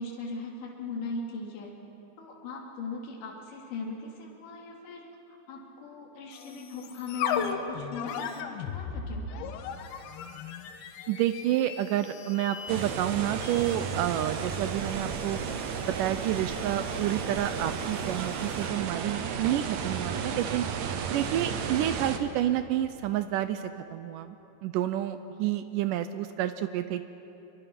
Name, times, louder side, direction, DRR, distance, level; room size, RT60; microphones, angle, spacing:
voice 1, 0.0-1.7 2.2-9.2, left 3 dB, 60° left, -1 dB, 3.9 m, -39 dB
sound 1, 6.3-18.8, left 7 dB, 85° left, 3.0 m, -39 dB
voice 2, 11.1-15.4 15.8-20.7 21.1-24.4 24.6-27.0, right 12 dB, 85° right, 11 dB, 1.9 m, -29 dB
sound 2, 12.7-22.2, right 6 dB, 65° right, 2.0 m, -33 dB
26.0 x 23.5 x 6.0 m, 3.0 s
omnidirectional pair, 4.4 m